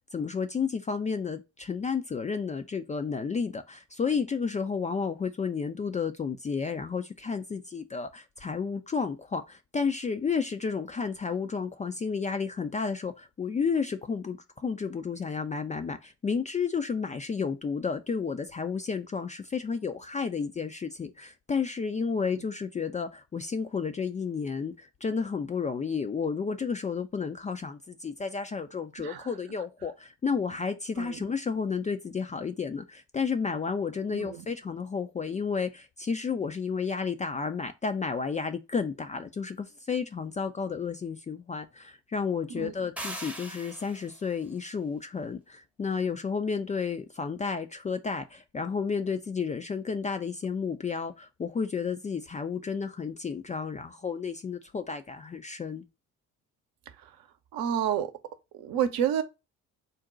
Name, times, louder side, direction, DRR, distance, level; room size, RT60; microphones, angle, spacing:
voice 1, 0.1-55.8, left 5 dB, 20° left, 0.4 m, -32 dB
voice 2, 29.0-29.3 31.0-31.3 34.1-34.5 42.5-42.7 57.0-57.1 57.5-58.1 58.5-59.2, right 9 dB, 60° right, 0.8 m, -30 dB
sound 1, 43.0-44.2, right 1 dB, 5° right, 0.7 m, -39 dB
3.9 x 2.2 x 3.7 m
hypercardioid pair, 55°, 41 cm